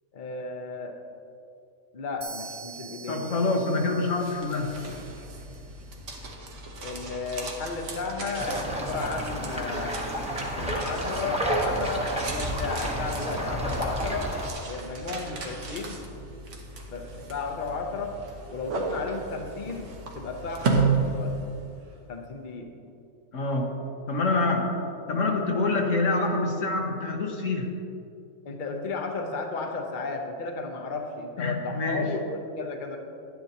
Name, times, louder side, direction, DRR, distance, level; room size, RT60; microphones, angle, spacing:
voice 1, 0.1-1.0 1.9-3.4 6.8-10.0 10.5-14.3 14.7-16.1 16.9-18.2 18.5-21.3 22.1-22.7 28.4-33.0, left 3 dB, 45° left, 3 dB, 0.8 m, -34 dB
sound 1, 2.2-6.0, right 5 dB, 40° right, 0.5 m, -45 dB
voice 2, 3.1-4.9 23.3-27.8 31.4-32.1, left 2 dB, 75° left, 2 dB, 1.4 m, -26 dB
sound 2, 3.9-21.9, right 4 dB, 75° right, 1.4 m, -34 dB
sound 3, 8.4-14.5, equal, 5° right, 0.9 m, -30 dB
11.0 x 10.0 x 2.9 m, 2.6 s
omnidirectional pair, 1.3 m